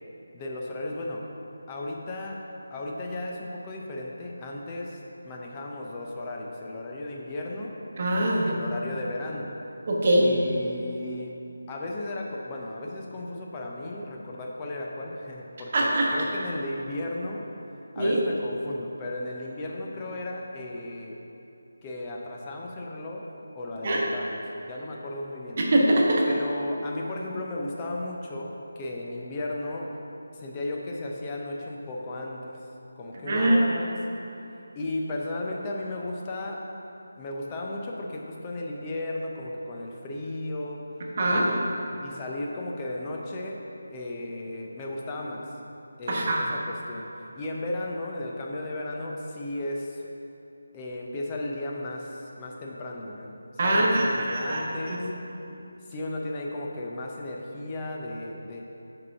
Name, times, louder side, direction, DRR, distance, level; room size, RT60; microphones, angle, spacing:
voice 1, 0.3-1.3 1.7-2.4 2.7-7.8 8.4-9.5 10.2-11.4 11.7-17.5 17.9-21.2 21.8-25.6 26.3-30.0 30.3-32.6 33.0-34.0 34.8-36.6 37.2-40.9 41.4-43.6 43.9-45.5 46.0-47.1 47.3-50.1 50.7-55.1 55.9-58.6, left 2 dB, 20° left, -1 dB, 0.6 m, -35 dB
voice 2, 8.0-8.5 9.9-10.3 15.7-16.1 18.0-18.2 23.8-24.1 25.6-26.3 33.2-33.6 41.2-41.5 46.1-46.4 53.6-54.6 54.9-55.0, right 1 dB, 40° right, -3 dB, 1.1 m, -22 dB
4.9 x 4.8 x 5.7 m, 2.8 s
figure-of-eight pair, 160°, 0 cm